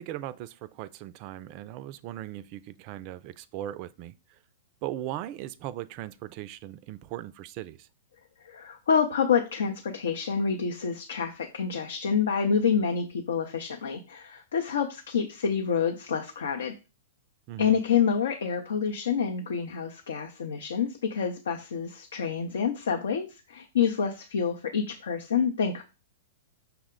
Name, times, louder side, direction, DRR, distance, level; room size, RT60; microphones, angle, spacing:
voice 1, 0.0-4.1 4.8-7.9 17.5-17.8, right 13 dB, 45° right, 0.3 m, -38 dB
voice 2, 8.4-16.7 17.6-25.8, left 6 dB, 75° left, 0.5 m, -27 dB
5.7 x 2.1 x 3.7 m
hypercardioid pair, 115°, 0 cm